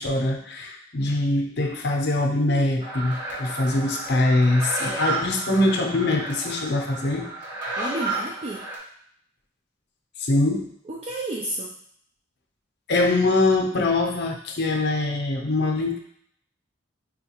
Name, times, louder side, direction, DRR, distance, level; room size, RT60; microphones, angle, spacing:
voice 1, 0.0-7.3 10.2-10.7 12.9-16.0, left 2 dB, 60° left, 2 dB, 0.7 m, -23 dB
sound 1, 2.8-8.7, right 2 dB, 50° right, 1.6 m, -32 dB
voice 2, 7.8-8.6 10.9-11.7, right 1 dB, 35° right, -3 dB, 0.4 m, -31 dB
5.5 x 2.3 x 2.9 m, 0.66 s
head